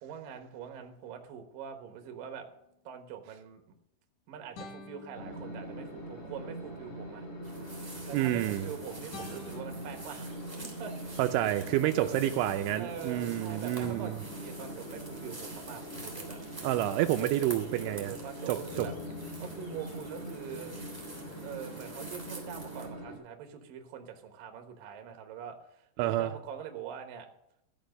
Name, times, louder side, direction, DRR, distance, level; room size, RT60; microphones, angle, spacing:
voice 1, 0.0-2.5 2.8-3.6 4.3-7.3 8.1-10.3 10.6-11.5 11.8-12.2 12.7-16.4 17.2-18.9 19.4-20.8 21.4-27.3, right 8 dB, 65° right, 5 dB, 2.5 m, -44 dB
sound 1, 2.6-2.7 4.5-6.2 9.1-11.5 13.8-18.1 18.7-21.9, left 4 dB, 65° left, 2.0 m, -50 dB
sound 2, 5.1-23.2, right 1 dB, 30° left, 3.8 m, -43 dB
sound 3, 7.4-22.9, right 2 dB, 5° right, 2.3 m, -48 dB
voice 2, 8.1-8.7 11.2-14.2 16.6-18.1 18.5-18.9 26.0-26.3, right 13 dB, 85° right, 7 dB, 3.0 m, -29 dB
15.0 x 5.9 x 6.4 m, 0.78 s
omnidirectional pair, 5.5 m